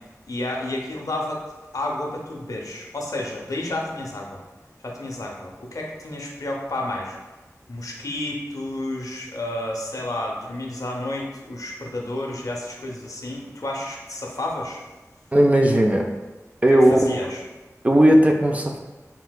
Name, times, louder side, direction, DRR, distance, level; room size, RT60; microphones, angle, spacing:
voice 1, 0.3-1.4 1.7-4.4 4.8-7.2 7.7-14.8 16.7-17.4, left 1 dB, 80° left, -1 dB, 0.5 m, -31 dB
voice 2, 15.3-16.1 16.6-17.0 17.8-18.8, right 1 dB, 25° right, 2 dB, 0.3 m, -16 dB
3.2 x 2.8 x 2.2 m, 1.1 s
wide cardioid pair, 60°, 6 cm